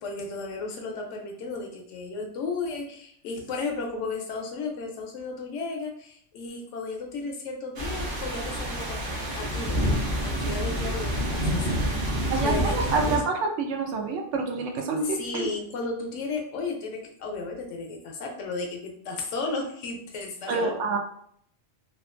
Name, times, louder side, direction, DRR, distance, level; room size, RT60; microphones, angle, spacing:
voice 1, 0.0-9.8 10.2-13.2 15.0-21.0, left 3 dB, 80° left, 2 dB, 1.0 m, -34 dB
sound 1, 7.8-13.2, equal, 55° right, 0.8 m, -28 dB
voice 2, 12.3-15.5 20.5-21.0, right 3 dB, 80° right, 3 dB, 0.9 m, -27 dB
2.8 x 2.3 x 2.4 m, 0.64 s
omnidirectional pair, 1.2 m